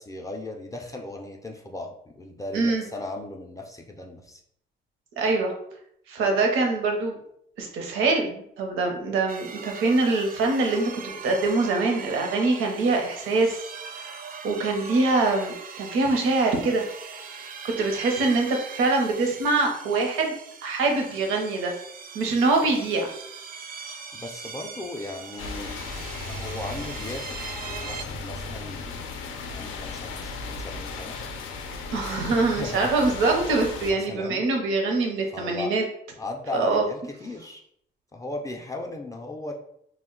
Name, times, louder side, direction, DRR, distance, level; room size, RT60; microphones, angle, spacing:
voice 1, 0.0-4.4 24.1-25.8 26.3-27.3 27.8-29.1 29.5-31.2 32.3-32.9 33.8-34.4 35.3-35.7 36.2-37.6 38.1-39.5, left 2 dB, 15° left, 1 dB, 0.4 m, -37 dB
voice 2, 2.5-2.8 5.2-5.5 6.1-7.2 7.6-13.6 14.4-16.8 17.8-20.3 20.6-21.7 22.1-23.1 31.9-35.8 36.5-36.8, right 3 dB, 90° right, 2 dB, 0.7 m, -24 dB
sound 1, 9.3-28.0, right 5 dB, 45° right, 0.4 m, -41 dB
sound 2, 25.4-33.9, left 4 dB, 90° left, 0.4 m, -36 dB
2.3 x 2.1 x 3.7 m, 0.70 s
cardioid pair, 90°, 20 cm